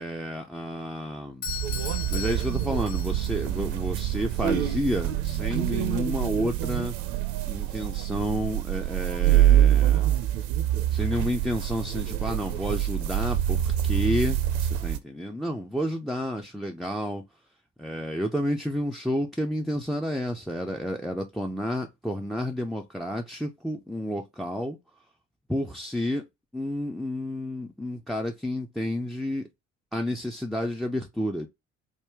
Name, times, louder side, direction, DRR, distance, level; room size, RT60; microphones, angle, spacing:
voice 1, 0.0-1.5 2.1-6.9 7.5-10.1 10.9-17.2 17.8-24.8 25.5-26.2 26.5-29.4 29.9-31.5, equal, ahead, 0.3 m, -30 dB
Doorbell, 1.4-3.4, left 9 dB, 60° left, 1.3 m, -37 dB
sound 1, 1.5-15.0, right 12 dB, 60° right, 0.6 m, -25 dB
3.7 x 2.1 x 3.2 m
figure-of-eight pair, 50°, 37 cm